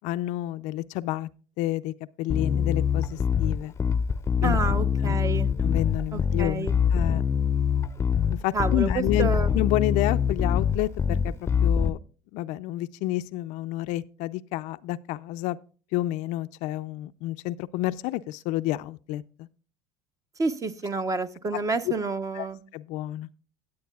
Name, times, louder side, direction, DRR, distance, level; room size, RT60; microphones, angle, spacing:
voice 1, 0.0-1.3 1.6-3.7 4.4-4.6 5.0-5.2 5.6-7.2 8.4-11.3 11.6-12.0 12.3-15.6 15.9-19.5 21.9-22.0 22.3-22.5 22.7-23.3, left 16 dB, 65° left, 0.5 m, -29 dB
Bass guitar, 2.3-11.9, left 7 dB, 20° left, 0.6 m, -24 dB
voice 2, 4.4-5.5 6.1-6.7 8.5-9.5 20.4-22.6, right 4 dB, 25° right, 0.9 m, -29 dB
17.0 x 8.4 x 2.3 m
supercardioid pair, 110°, 14 cm